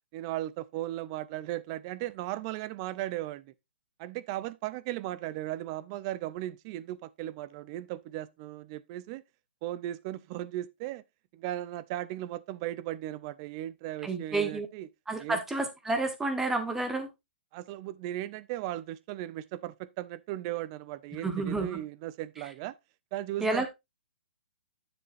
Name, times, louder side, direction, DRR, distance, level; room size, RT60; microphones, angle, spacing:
voice 1, 0.1-3.5 4.0-9.2 9.6-11.0 11.3-14.9 15.2-15.4 17.5-22.8 23.1-23.7, right 14 dB, 25° right, 0.5 m, -37 dB
voice 2, 14.0-14.7 15.1-17.1 21.2-21.8 23.4-23.7, right 2 dB, 5° right, 1.2 m, -30 dB
10.0 x 7.0 x 2.5 m
hypercardioid pair, 160°, 6 cm